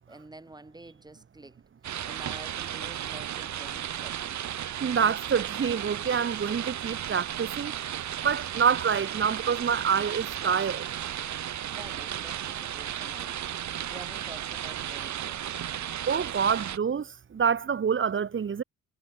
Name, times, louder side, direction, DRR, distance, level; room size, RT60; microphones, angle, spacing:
voice 1, 0.1-1.7 2.1-4.4 11.7-13.5 13.9-15.5, right 2 dB, 15° right, 5.9 m, -48 dB
sound 1, 1.8-16.8, right 10 dB, 65° right, 5.8 m, -34 dB
voice 2, 4.8-7.7 8.2-10.9 16.1-18.6, right 7 dB, 40° right, 1.9 m, -27 dB
cardioid pair, 90°, 30 cm